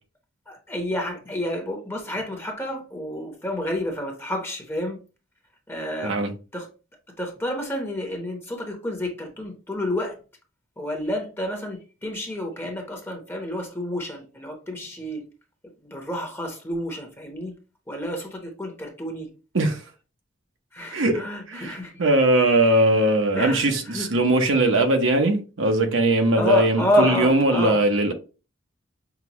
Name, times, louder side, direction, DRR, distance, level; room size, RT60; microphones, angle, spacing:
voice 1, 0.5-5.0 5.7-6.2 6.5-6.7 7.2-10.2 10.8-15.3 15.8-17.5 17.9-19.3 20.7-21.9 23.3-24.1 26.3-27.8, left 1 dB, 10° left, 0.9 m, -29 dB
voice 2, 20.9-21.2 21.5-28.1, right 1 dB, 70° right, 0.8 m, -20 dB
5.8 x 2.3 x 2.9 m
head